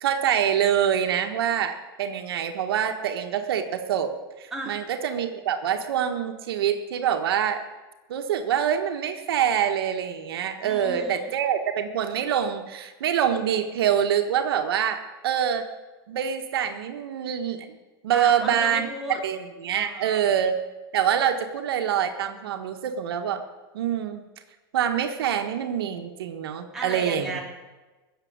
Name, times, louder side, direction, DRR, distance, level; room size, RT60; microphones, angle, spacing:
voice 1, 0.0-4.1 4.4-7.6 8.1-15.6 16.1-17.8 18.0-18.9 19.2-20.6 20.9-23.4 23.7-24.2 24.7-27.4, right 9 dB, 85° right, 6 dB, 1.5 m, -25 dB
voice 2, 10.6-11.3 18.1-19.2 19.7-20.2 26.7-27.4, right 2 dB, 5° right, -4 dB, 3.8 m, -35 dB
16.0 x 7.4 x 9.5 m, 1.2 s
supercardioid pair, 140°, 12 cm